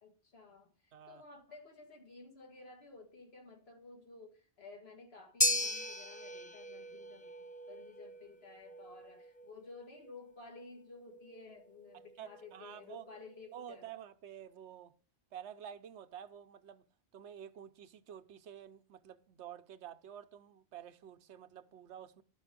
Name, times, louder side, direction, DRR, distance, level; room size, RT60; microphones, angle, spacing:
voice 1, 0.0-13.9, left 3 dB, 60° left, 2.0 m, -54 dB
voice 2, 0.9-1.2 11.9-13.1 13.5-14.9 15.3-16.9 17.1-22.2, right 9 dB, 80° right, 1.0 m, -50 dB
sound 1, 5.4-13.8, left 1 dB, 10° left, 0.5 m, -39 dB
11.5 x 5.4 x 5.1 m
omnidirectional pair, 1.2 m